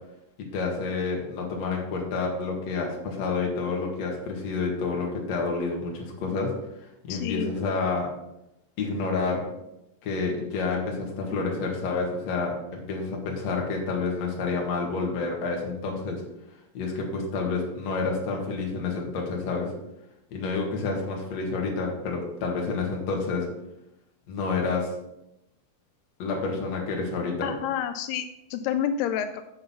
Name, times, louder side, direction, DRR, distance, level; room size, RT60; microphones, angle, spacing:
voice 1, 0.4-6.6 7.0-8.1 8.8-9.5 10.0-16.2 16.7-19.7 20.3-23.5 24.3-24.9 26.2-27.5, left 4 dB, 50° left, 0 dB, 2.7 m, -29 dB
voice 2, 7.1-7.5 27.4-29.4, left 9 dB, 85° left, 9 dB, 2.6 m, -29 dB
8.6 x 6.5 x 5.8 m, 0.86 s
omnidirectional pair, 4.6 m